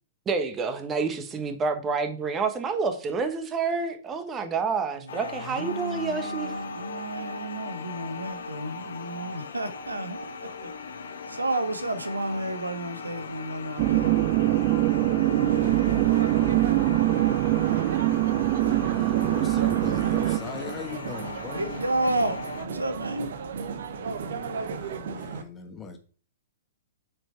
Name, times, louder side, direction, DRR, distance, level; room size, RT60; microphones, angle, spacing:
voice 1, 0.3-6.5, right 5 dB, 20° right, 1.2 m, -28 dB
voice 2, 5.0-10.7 11.3-17.9 21.5-23.3, right 2 dB, 85° right, 1.1 m, -33 dB
sound 1, 5.1-22.7, left 4 dB, 60° left, 1.0 m, -39 dB
sound 2, 13.8-20.4, right 16 dB, 40° right, 0.4 m, -23 dB
sound 3, 15.4-25.4, right 5 dB, 60° right, 1.0 m, -35 dB
voice 3, 18.8-21.8 24.8-26.0, left 6 dB, 15° left, 1.5 m, -40 dB
7.7 x 4.6 x 4.5 m
figure-of-eight pair, 115°, 0 cm